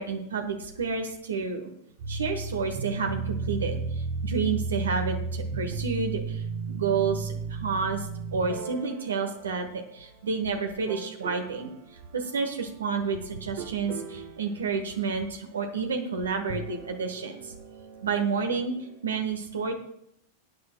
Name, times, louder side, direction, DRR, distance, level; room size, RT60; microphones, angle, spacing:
voice 1, 0.0-1.7 2.1-17.5 18.0-19.7, right 5 dB, 70° right, 4 dB, 1.2 m, -30 dB
sound 1, 2.0-10.3 10.9-11.7 13.6-15.3 16.4-19.0, right 4 dB, 50° right, 1.4 m, -35 dB
19.0 x 9.6 x 2.3 m, 0.74 s
figure-of-eight pair, 90°, 0 cm